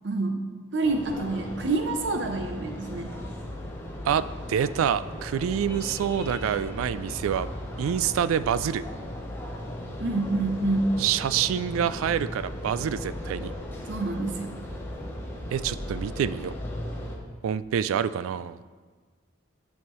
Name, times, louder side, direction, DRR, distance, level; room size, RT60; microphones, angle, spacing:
voice 1, 0.0-0.4 0.7-3.1 10.0-10.9 13.9-14.6, right 2 dB, 60° right, 4 dB, 0.6 m, -27 dB
sound 1, 0.8-17.2, left 1 dB, 10° left, 0.9 m, -37 dB
voice 2, 4.0-7.5 7.8-8.8 11.0-13.5 15.5-16.5 17.4-18.6, right 8 dB, 90° right, 16 dB, 0.3 m, -27 dB
11.0 x 6.5 x 3.1 m, 1.5 s
head